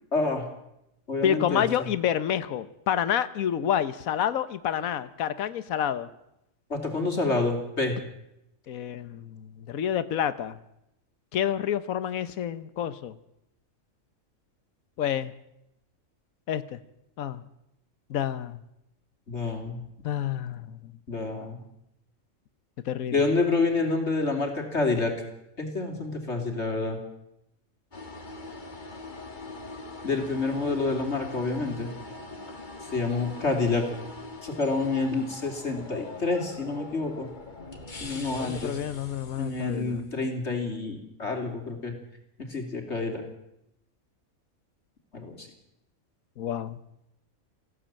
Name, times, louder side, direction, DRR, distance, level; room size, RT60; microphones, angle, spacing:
voice 1, 0.1-0.4 1.1-1.6 6.7-7.9 19.3-19.8 21.1-21.6 23.1-25.1 25.6-27.0 30.0-31.9 32.9-33.9 34.4-37.3 38.0-38.8 39.4-41.9 42.5-43.2 45.1-45.5, left 3 dB, 50° left, 3 dB, 3.4 m, -28 dB
voice 2, 1.2-6.1 8.7-10.6 11.3-13.1 15.0-15.3 16.5-16.8 17.2-17.4 18.1-18.6 20.0-20.9 22.9-23.2 38.2-40.1 46.4-46.8, left 9 dB, 80° left, 14 dB, 1.4 m, -29 dB
sound 1, 27.9-40.2, left 2 dB, 35° left, 2.0 m, -42 dB
19.0 x 15.5 x 8.8 m, 0.85 s
omnidirectional pair, 1.4 m